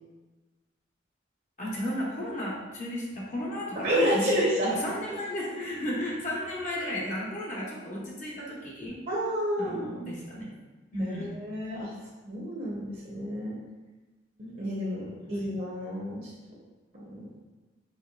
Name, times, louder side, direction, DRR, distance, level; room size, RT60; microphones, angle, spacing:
voice 1, 1.6-4.3 4.7-9.0 9.6-10.5 10.9-11.3 15.3-15.5, left 1 dB, 40° left, -4 dB, 0.8 m, -34 dB
voice 2, 3.8-4.7 9.1-10.1 11.0-11.9 12.3-13.6 14.4-16.3 17.2-17.3, equal, 50° right, -6 dB, 0.8 m, -30 dB
4.5 x 3.3 x 2.3 m, 1.2 s
head